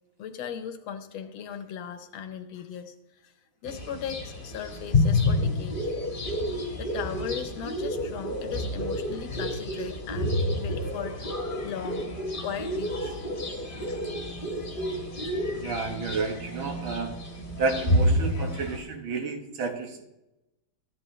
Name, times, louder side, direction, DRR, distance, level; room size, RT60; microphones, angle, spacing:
voice 1, 0.2-3.3 3.6-5.9 6.8-12.1 12.4-13.2, left 8 dB, 80° left, 8 dB, 1.7 m, -38 dB
sound 1, 3.7-18.8, left 1 dB, 30° left, 1.3 m, -29 dB
voice 2, 15.5-17.2 17.6-20.1, right 4 dB, 80° right, 5 dB, 2.1 m, -31 dB
14.0 x 10.0 x 3.2 m, 0.94 s
omnidirectional pair, 2.2 m